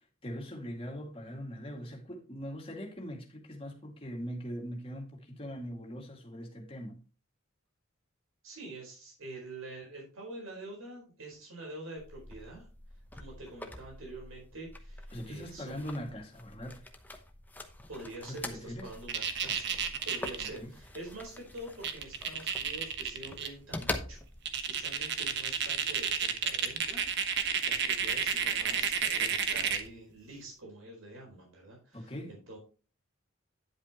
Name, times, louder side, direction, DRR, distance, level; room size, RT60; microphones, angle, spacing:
voice 1, 0.2-7.0 15.1-16.8 18.2-18.9 20.6-20.7 31.9-32.3, equal, 25° left, 2.2 m, -41 dB
voice 2, 8.4-12.7 13.2-15.9 17.9-19.8 20.0-24.2 24.7-32.6, right 2 dB, 75° right, 4.4 m, -46 dB
sound 1, 12.0-24.6, left 2 dB, 10° left, 0.9 m, -44 dB
sound 2, 19.1-20.5 21.6-21.7 21.8-23.5 23.9-24.0 24.5-29.9, right 7 dB, 55° right, 1.2 m, -31 dB
10.0 x 8.3 x 3.0 m
head